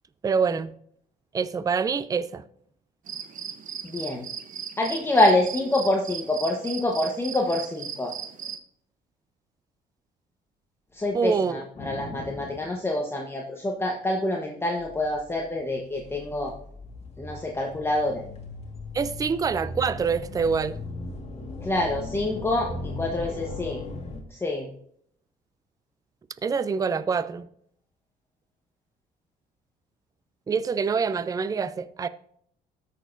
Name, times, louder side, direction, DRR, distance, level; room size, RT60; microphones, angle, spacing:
voice 1, 0.2-0.7 1.3-2.4 11.1-11.6 18.9-20.8 26.4-27.5 30.5-32.1, right 5 dB, 20° right, 0.4 m, -25 dB
sound 1, 3.1-8.6, right 7 dB, 50° right, 0.9 m, -37 dB
voice 2, 3.8-4.2 4.8-8.1 10.9-16.5 17.2-18.2 21.6-23.8 24.3-24.7, left 1 dB, 15° left, 1.2 m, -26 dB
sound 2, 11.7-12.7 14.8-24.2, left 2 dB, 40° left, 1.8 m, -38 dB
13.5 x 6.6 x 2.7 m
cardioid pair, 110°, 17 cm